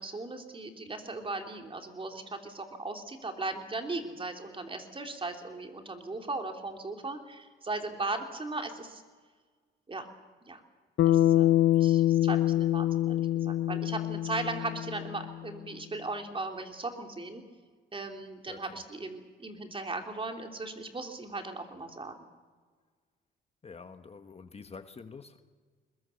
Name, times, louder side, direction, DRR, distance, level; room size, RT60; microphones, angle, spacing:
voice 1, 0.0-9.0 9.9-10.1 10.5-10.6 11.0-17.4 17.9-22.1, right 3 dB, 25° right, 4 dB, 3.0 m, -38 dB
Bass guitar, 11.0-15.4, left 13 dB, 65° left, 0.7 m, -25 dB
voice 2, 11.1-11.5 18.5-18.6 23.6-25.4, left 4 dB, 30° left, 9 dB, 1.3 m, -47 dB
22.0 x 21.0 x 7.0 m, 1.5 s
cardioid pair, 90°, 20 cm